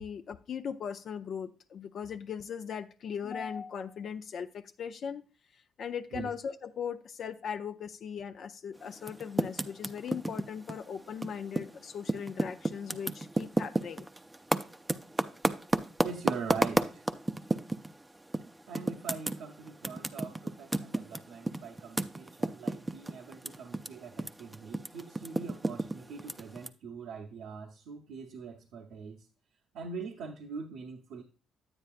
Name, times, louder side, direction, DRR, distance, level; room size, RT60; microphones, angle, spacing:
voice 1, 0.0-5.2 5.5-14.1, left 7 dB, 60° left, 0.5 m, -39 dB
Typing, 9.0-11.8 12.0-17.9 18.3-18.5 18.8-23.9 24.1-26.7, right 2 dB, 15° right, 0.5 m, -31 dB
voice 2, 16.0-17.1 18.7-29.3 29.7-31.2, right 5 dB, 85° right, 0.9 m, -42 dB
9.4 x 8.8 x 2.5 m
cardioid pair, 90°, 0 cm